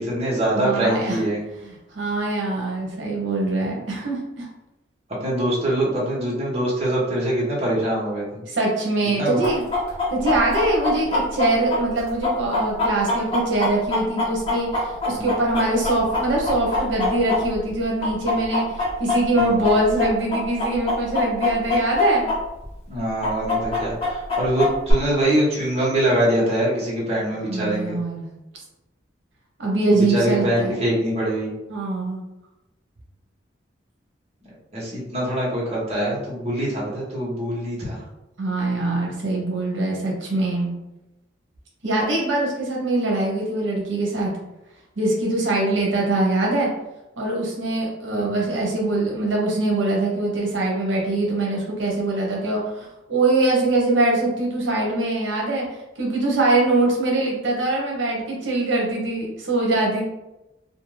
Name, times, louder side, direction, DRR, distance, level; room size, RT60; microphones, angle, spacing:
voice 1, 0.0-1.4 5.2-8.4 9.2-9.4 15.1-15.3 19.4-19.7 22.9-28.0 29.9-31.5 34.7-38.0 48.2-48.3, right 1 dB, 35° right, -6 dB, 0.9 m, -23 dB
voice 2, 0.5-1.2 1.6-4.5 8.5-9.6 10.1-22.3 27.5-28.3 29.6-30.8 31.7-32.2 38.4-40.7 41.8-44.4 45.0-46.7 47.2-55.7 56.0-60.0, right 2 dB, 85° right, -2 dB, 0.8 m, -23 dB
Chicken rooster, 9.4-17.7 18.0-22.4 22.6-22.7 23.2-24.9, left 3 dB, 30° left, 1.0 m, -23 dB
2.5 x 2.3 x 3.1 m, 0.95 s
head